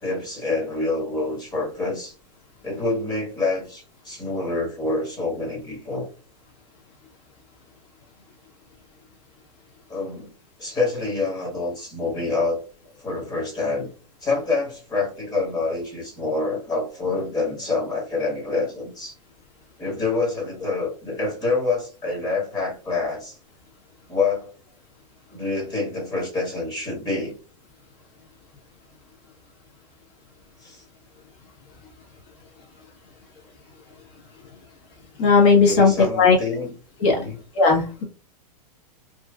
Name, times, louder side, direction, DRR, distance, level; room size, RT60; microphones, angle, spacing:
voice 1, 0.0-2.1 2.6-6.1 9.9-10.3 10.6-12.7 13.0-13.9 14.2-19.1 19.8-23.4 24.1-24.5 25.3-27.3 30.6-30.8 35.6-36.7 37.1-37.4, left 3 dB, 20° left, 1.3 m, -27 dB
voice 2, 35.2-36.4 37.0-37.2 37.5-38.0, left 4 dB, 40° left, 1.0 m, -16 dB
3.1 x 2.2 x 2.2 m
hypercardioid pair, 120°, 20 cm